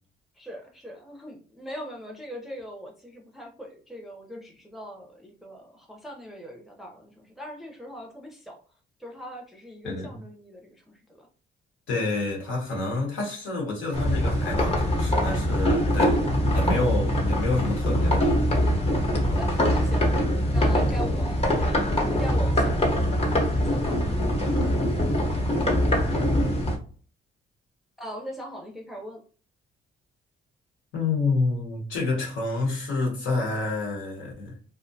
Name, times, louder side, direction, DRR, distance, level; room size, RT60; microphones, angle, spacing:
voice 1, 0.4-8.6 9.0-11.3 16.2-16.6 19.3-20.1 20.5-23.0 23.4-24.1 28.0-29.2, equal, ahead, 0.5 m, -41 dB
voice 2, 11.9-16.2 16.5-18.4 19.3-19.4 30.9-34.5, left 3 dB, 80° left, 1.1 m, -28 dB
sound 1, 13.9-26.8, equal, 30° left, 0.8 m, -23 dB
2.5 x 2.0 x 2.6 m
cardioid pair, 90°, 20 cm